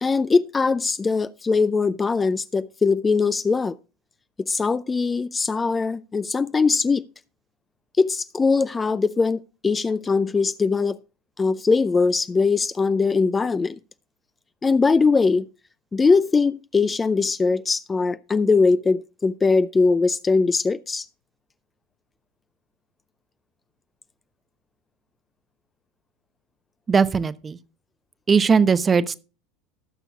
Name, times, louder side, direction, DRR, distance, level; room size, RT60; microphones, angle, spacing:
voice 1, 0.0-3.7 4.4-7.0 8.0-11.0 11.4-13.8 14.6-15.5 15.9-21.1, left 4 dB, 20° left, 0.5 m, -21 dB
voice 2, 26.9-27.6 28.3-29.2, right 5 dB, 25° right, 0.8 m, -19 dB
19.0 x 6.8 x 2.4 m
hypercardioid pair, 75°, 0 cm